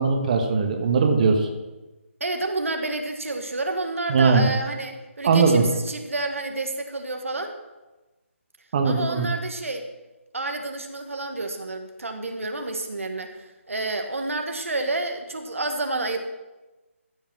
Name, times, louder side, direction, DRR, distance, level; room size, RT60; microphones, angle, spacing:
voice 1, 0.0-1.5 4.1-4.4 5.2-5.6 8.7-9.3, right 4 dB, 35° right, 3 dB, 1.3 m, -20 dB
voice 2, 2.2-7.5 8.8-9.9 10.3-16.2, right 2 dB, 70° right, 5 dB, 1.5 m, -29 dB
14.5 x 5.5 x 6.0 m, 1.1 s
figure-of-eight pair, 150°, 7 cm